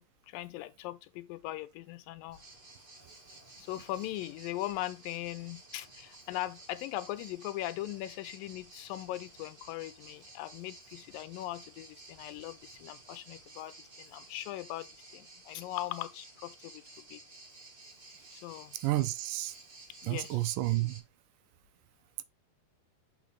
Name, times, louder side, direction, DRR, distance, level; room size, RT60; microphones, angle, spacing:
voice 1, 0.0-2.4 3.6-17.2 18.3-18.7 20.0-20.4, left 15 dB, 90° left, 2.4 m, -40 dB
sound 1, 2.3-21.0, right 2 dB, 30° right, 1.0 m, -54 dB
voice 2, 18.8-19.5 20.1-21.0, right 17 dB, 80° right, 2.1 m, -30 dB
7.0 x 5.0 x 3.1 m
omnidirectional pair, 3.9 m